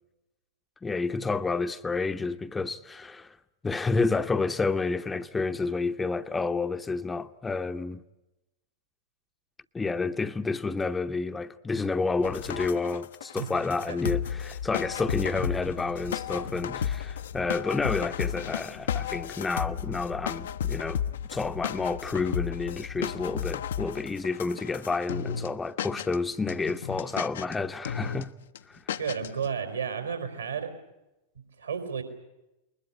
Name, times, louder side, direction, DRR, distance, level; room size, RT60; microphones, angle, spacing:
voice 1, 0.8-3.4 3.6-8.0 9.7-21.0 21.3-28.3 28.7-29.0, left 4 dB, 10° left, 0.8 m, -30 dB
sound 1, 12.2-25.5 25.8-26.2 26.5-27.5 27.8-28.2 28.5-28.6 28.9-29.5, left 8 dB, 60° left, 0.8 m, -33 dB
voice 2, 29.0-30.7 31.6-32.0, right 7 dB, 75° right, 4.1 m, -32 dB
21.5 x 20.5 x 9.9 m
figure-of-eight pair, 90°, 0 cm